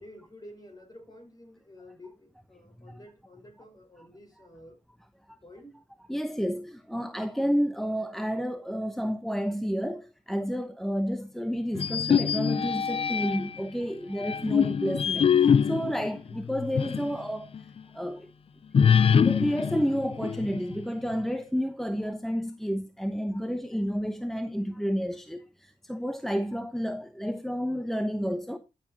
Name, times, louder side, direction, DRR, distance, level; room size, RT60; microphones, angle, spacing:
voice 1, 0.0-4.8 5.4-5.8, left 1 dB, 30° left, 6.4 m, -50 dB
voice 2, 6.1-17.5 17.9-18.3 18.9-28.6, equal, ahead, 0.9 m, -30 dB
sound 1, 11.7-13.6 14.2-17.2 17.5-17.6 18.7-20.8, left 7 dB, 50° left, 0.4 m, -24 dB
13.5 x 7.4 x 2.8 m
cardioid pair, 55°, 13 cm